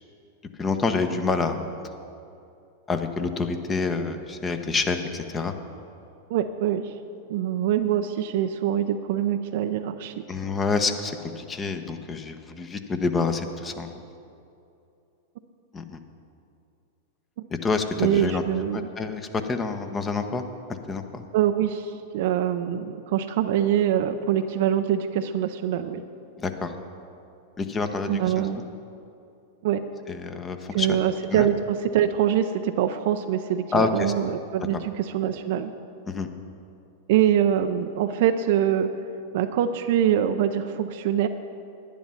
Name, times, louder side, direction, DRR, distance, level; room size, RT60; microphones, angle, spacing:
voice 1, 0.6-1.6 2.9-5.5 10.3-13.9 15.7-16.0 17.6-18.4 18.7-20.4 20.9-21.2 26.4-26.7 27.6-28.5 30.1-31.0 31.3-31.5 33.7-34.1 34.7-34.8 36.1-36.3, left 4 dB, 20° left, 7 dB, 1.0 m, -27 dB
voice 2, 6.3-6.9 7.3-10.2 18.0-18.8 21.3-26.0 28.1-28.6 29.6-29.8 30.7-35.7 37.1-38.9 39.3-41.3, right 10 dB, 60° right, 7 dB, 0.5 m, -24 dB
10.5 x 10.0 x 5.7 m, 2.6 s
hypercardioid pair, 100°, 0 cm